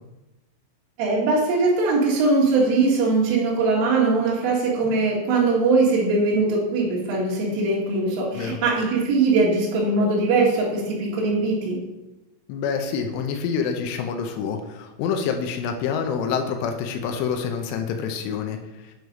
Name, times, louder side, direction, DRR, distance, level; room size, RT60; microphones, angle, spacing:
voice 1, 1.0-11.8, right 3 dB, 90° right, -5 dB, 4.4 m, -21 dB
voice 2, 12.5-18.9, left 6 dB, 90° left, 4 dB, 3.3 m, -27 dB
9.5 x 4.8 x 5.3 m, 1.0 s
omnidirectional pair, 5.6 m